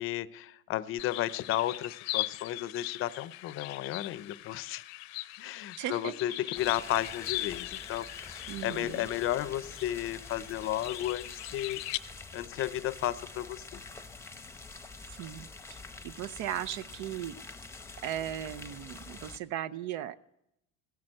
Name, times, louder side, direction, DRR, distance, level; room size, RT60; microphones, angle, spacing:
voice 1, 0.0-4.8 5.4-11.8 12.3-13.8, left 13 dB, 45° left, 17 dB, 0.6 m, -33 dB
sound 1, 1.0-12.0, left 19 dB, 85° left, 0.7 m, -40 dB
voice 2, 5.8-6.5 8.5-9.1 15.1-15.8 16.0-17.4 18.0-20.2, right 11 dB, 65° right, 15 dB, 0.7 m, -37 dB
sound 2, 6.5-19.4, left 3 dB, 10° left, 0.8 m, -47 dB
16.5 x 11.0 x 7.6 m, 0.81 s
cardioid pair, 135°, 31 cm